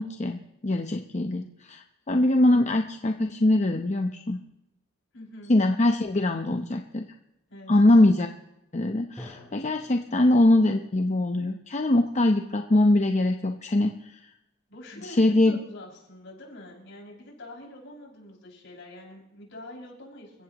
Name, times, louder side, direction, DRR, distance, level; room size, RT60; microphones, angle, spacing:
voice 1, 0.0-4.4 5.5-7.0 7.7-8.3 8.7-14.2 15.0-15.6, left 1 dB, 35° left, 5 dB, 0.9 m, -22 dB
voice 2, 5.1-5.5 7.5-7.8 14.7-20.4, left 1 dB, 65° left, -2 dB, 6.3 m, -45 dB
Drum, 9.2-12.9, equal, 10° left, 6.4 m, -50 dB
29.0 x 15.5 x 3.0 m, 0.91 s
head